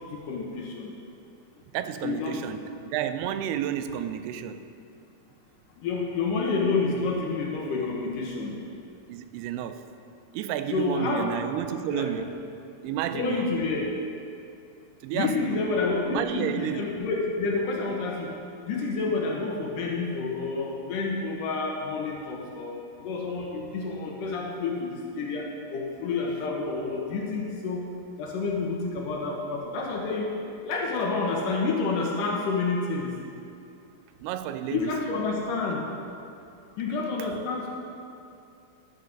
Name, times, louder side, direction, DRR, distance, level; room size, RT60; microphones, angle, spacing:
voice 1, 0.1-0.9 2.0-2.4 5.8-8.6 10.7-11.3 11.9-12.1 13.1-13.9 15.1-18.3 18.7-27.8 28.2-30.3 30.6-33.1 34.7-35.8 36.8-37.7, left 4 dB, 70° left, -1 dB, 2.3 m, -29 dB
voice 2, 1.7-4.7 9.1-9.8 10.3-12.3 12.8-13.5 15.0-15.6 16.1-16.8 34.2-34.9, right 10 dB, 90° right, 10 dB, 2.6 m, -31 dB
11.5 x 8.1 x 5.3 m, 2.6 s
omnidirectional pair, 4.5 m